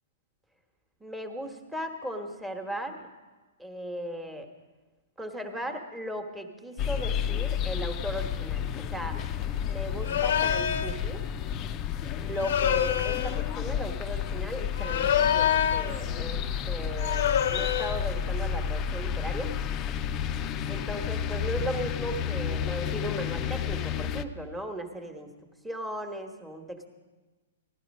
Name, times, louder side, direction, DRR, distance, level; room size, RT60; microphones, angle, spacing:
voice 1, 1.0-3.1 3.6-4.5 5.2-9.2 9.6-11.3 12.2-19.5 20.7-25.3 25.6-26.9, equal, 5° right, 4 dB, 1.3 m, -37 dB
sound 1, 6.8-24.2, left 8 dB, 30° left, 0.5 m, -31 dB
sound 2, 10.0-11.0 12.4-13.4 14.8-16.0 17.0-18.0, left 9 dB, 70° left, 0.7 m, -26 dB
15.0 x 12.0 x 5.4 m, 1.3 s
hypercardioid pair, 135°, 0 cm